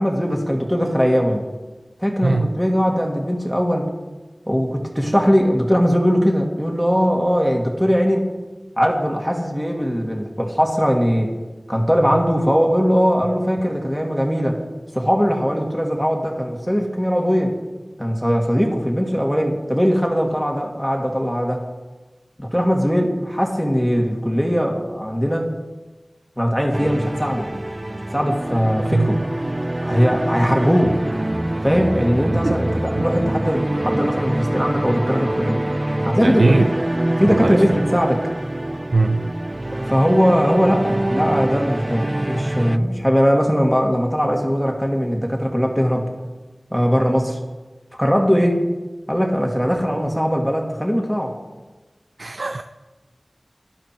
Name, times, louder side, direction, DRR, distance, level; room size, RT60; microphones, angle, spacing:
voice 1, 0.0-1.5 2.0-3.9 4.5-8.3 8.8-11.3 11.7-14.6 14.9-17.5 18.0-21.6 22.4-25.5 26.4-27.5 28.1-29.2 29.8-31.0 31.6-35.6 36.0-36.6 37.2-38.3 39.8-46.1 46.7-47.4 48.0-48.6 49.1-51.3, equal, ahead, 1 dB, 2.2 m, -20 dB
sound 1, 26.7-42.8, right 1 dB, 35° right, 0.6 m, -25 dB
voice 2, 36.2-36.6 37.3-37.6 38.9-39.3 52.2-52.6, right 3 dB, 85° right, 8 dB, 0.6 m, -19 dB
18.5 x 12.0 x 4.6 m, 1.2 s
wide cardioid pair, 55°, 0 cm